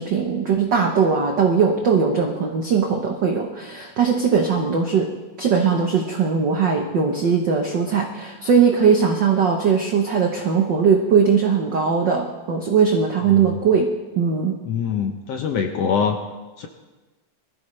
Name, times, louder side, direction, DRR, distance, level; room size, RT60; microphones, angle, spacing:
voice 1, 0.0-5.1 5.4-13.9 14.2-14.6, right 6 dB, 85° right, 1 dB, 0.9 m, -19 dB
voice 2, 14.6-16.2 16.6-16.7, left 6 dB, 70° left, 5 dB, 1.5 m, -24 dB
21.5 x 14.0 x 3.3 m, 1.2 s
omnidirectional pair, 3.6 m